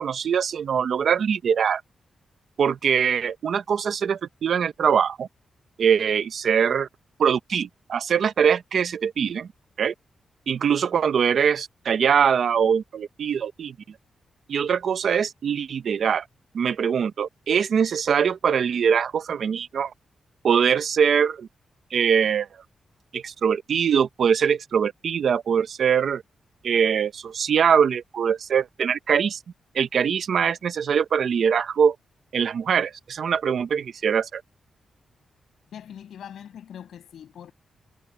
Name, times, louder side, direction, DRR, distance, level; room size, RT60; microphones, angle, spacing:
voice 1, 0.0-1.8 2.6-5.3 5.8-6.9 7.2-9.5 9.8-9.9 10.5-13.7 14.5-16.2 16.5-19.9 20.4-21.5 21.9-22.5 23.1-26.2 26.6-29.4 29.7-31.9 32.3-34.4, right 7 dB, 60° right, 0.9 m, -22 dB
voice 2, 35.7-37.5, left 9 dB, 85° left, 6.4 m, -42 dB
wide cardioid pair, 145°, 0 cm